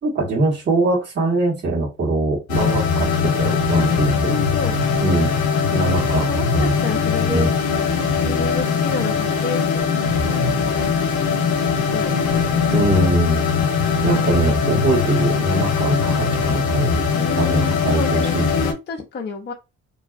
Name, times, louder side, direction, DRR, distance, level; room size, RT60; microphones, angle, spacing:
voice 1, 0.0-4.3 5.0-5.3 5.7-6.7 7.2-7.5 12.7-13.4 14.0-16.9 17.4-18.5, right 2 dB, 35° right, -4 dB, 1.4 m, -22 dB
sound 1, 2.5-18.7, left 5 dB, 80° left, 0.6 m, -20 dB
voice 2, 4.2-4.8 6.1-7.5 8.2-9.9 10.4-10.9 11.9-12.6 17.1-19.5, left 4 dB, 35° left, 0 dB, 0.6 m, -30 dB
2.6 x 2.3 x 2.4 m, 0.25 s
cardioid pair, 90°, 30 cm